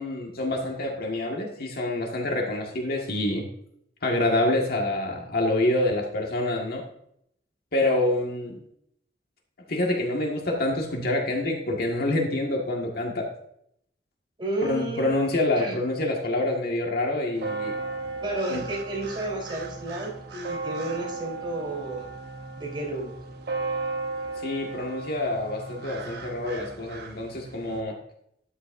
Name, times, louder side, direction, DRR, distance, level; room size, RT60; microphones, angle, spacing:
voice 1, 0.0-3.4 4.0-6.8 7.7-8.6 9.7-13.3 14.6-17.7 18.5-18.6 24.4-28.0, left 1 dB, 55° left, 0 dB, 1.8 m, -27 dB
voice 2, 14.4-15.1 15.5-15.8 18.2-22.1 22.6-23.1, right 1 dB, 30° right, -3 dB, 3.7 m, -32 dB
sound 1, 17.4-27.8, right 3 dB, 60° right, 1.1 m, -35 dB
13.0 x 10.0 x 2.6 m, 0.72 s
head